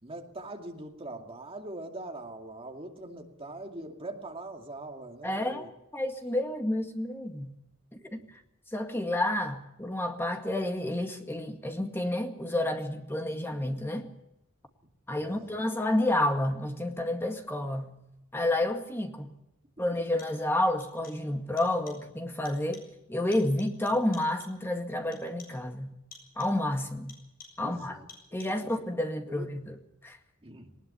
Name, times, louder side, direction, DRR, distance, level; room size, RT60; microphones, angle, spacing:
voice 1, 0.0-5.7 15.2-15.5 27.6-28.4 29.3-29.5 30.4-30.8, right 2 dB, 25° right, 2 dB, 2.5 m, -42 dB
voice 2, 5.2-5.7 5.9-7.5 8.1-8.2 8.7-14.1 15.1-17.9 18.3-19.3 19.8-26.0 26.4-27.2 27.6-28.0 28.3-29.8 30.0-30.2, left 1 dB, 10° left, 4 dB, 2.0 m, -30 dB
sound 1, 18.9-19.0 19.9-20.5 20.8-21.3 21.6-22.1 22.4-23.0 23.3-24.7 25.1-25.7 26.1-26.7 27.1-27.7 28.1-28.7, left 4 dB, 45° left, 8.0 m, -53 dB
20.0 x 19.5 x 7.0 m, 0.85 s
head